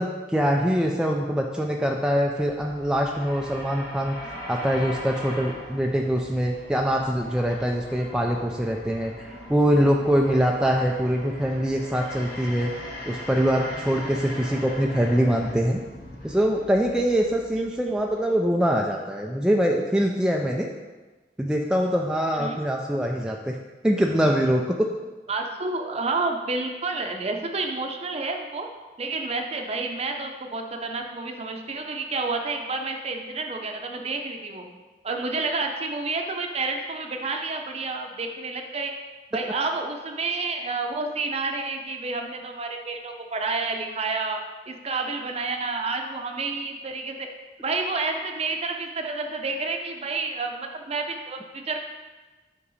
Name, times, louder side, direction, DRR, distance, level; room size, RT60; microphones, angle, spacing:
voice 1, 0.0-4.2 4.5-12.7 13.1-15.8 16.2-20.7 21.4-23.6 23.8-24.9, equal, 5° right, 0 dB, 0.3 m, -23 dB
sound 1, 2.1-18.5, left 1 dB, 60° left, 1.6 m, -40 dB
voice 2, 25.3-28.7 29.0-34.6 35.0-38.9 39.3-44.4 44.7-47.3 47.6-51.8, right 3 dB, 35° right, 4 dB, 0.7 m, -29 dB
5.6 x 5.4 x 4.1 m, 1.2 s
head